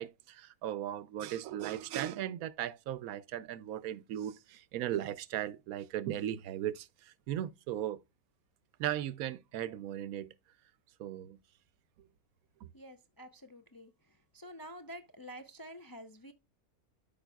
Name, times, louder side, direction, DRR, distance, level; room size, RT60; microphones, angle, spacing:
voice 1, 0.0-8.0 8.8-10.3 11.0-11.4, right 12 dB, 80° right, 1.0 m, -37 dB
voice 2, 12.7-13.9 14.3-16.3, equal, 30° left, 0.4 m, -48 dB
12.5 x 5.1 x 2.3 m
omnidirectional pair, 1.5 m